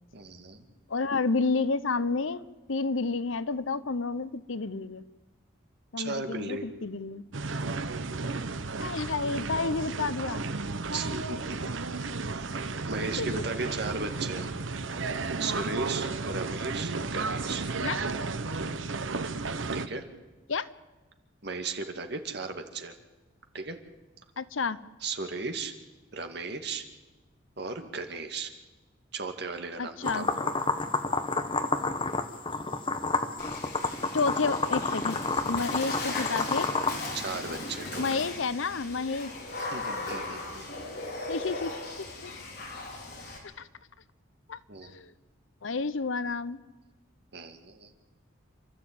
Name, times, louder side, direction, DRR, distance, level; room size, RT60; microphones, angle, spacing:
voice 1, 0.1-0.6 6.0-6.7 10.9-11.8 12.3-12.6 12.9-14.5 15.4-17.7 19.7-20.1 21.4-22.9 23.5-23.8 25.0-25.7 26.1-26.9 27.6-28.5 29.1-30.3 37.1-38.2 39.6-40.7 44.7-44.9 47.3-47.9, right 4 dB, 55° right, 6 dB, 2.1 m, -36 dB
voice 2, 0.9-2.4 2.7-5.0 5.9-7.3 8.8-10.5 11.6-11.7 13.2-13.4 17.8-18.0 20.5-20.7 24.4-24.8 29.8-30.3 34.1-35.2 35.4-36.7 38.0-39.3 41.3-42.4 43.6-43.7 44.5-45.1 45.6-46.6, left 4 dB, 80° left, 16 dB, 0.8 m, -30 dB
sound 1, 7.3-19.9, right 3 dB, 75° right, 1.0 m, -33 dB
sound 2, 30.0-37.0, left 3 dB, 25° left, 1.3 m, -30 dB
Water / Splash splatter, 33.4-43.4, left 2 dB, 55° left, 4.6 m, -38 dB
28.5 x 13.0 x 8.8 m, 1.2 s
head